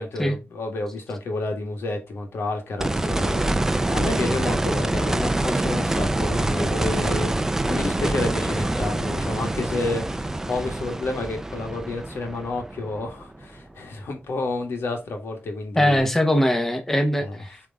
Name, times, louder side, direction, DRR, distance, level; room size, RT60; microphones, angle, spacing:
voice 1, 0.0-16.0 17.2-17.5, left 2 dB, 90° left, 1.9 m, -30 dB
sound 1, 2.8-13.7 16.0-16.1, right 2 dB, 10° right, 0.5 m, -25 dB
voice 2, 15.8-17.6, equal, 10° left, 0.9 m, -21 dB
7.7 x 3.5 x 3.7 m
wide cardioid pair, 160°, 4 cm